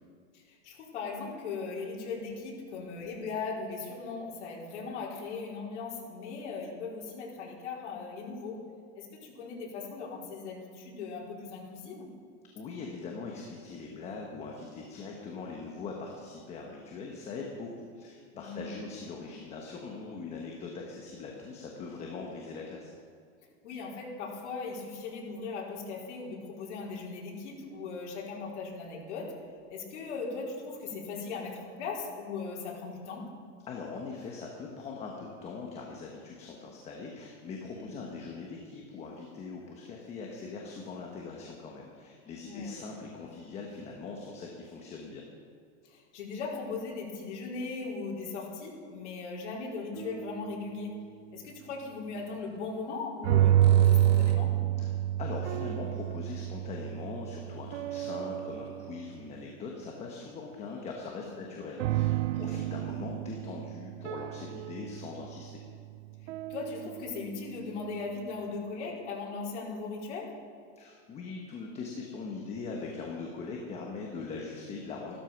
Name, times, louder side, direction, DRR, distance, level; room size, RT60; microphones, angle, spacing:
voice 1, 0.3-8.6 8.9-12.1 18.3-18.7 23.6-29.3 29.7-33.3 37.7-38.0 42.4-43.0 45.8-51.0 51.3-54.6 61.2-61.5 62.3-62.6 66.5-70.4, left 4 dB, 75° left, -3 dB, 4.6 m, -38 dB
voice 2, 12.5-22.9 33.7-45.2 54.8-54.9 55.2-65.6 70.8-75.1, left 4 dB, 20° left, 0 dB, 1.2 m, -41 dB
sound 1, 50.0-50.6 53.2-59.1 61.8-67.4, right 12 dB, 85° right, 0.5 m, -29 dB
sound 2, 52.4-52.6 53.4-54.7 57.3-57.4 58.2-58.3 58.7-58.8 59.1-59.2, right 5 dB, 25° right, 1.1 m, -48 dB
14.5 x 13.0 x 5.9 m, 2.4 s
supercardioid pair, 175°, 35 cm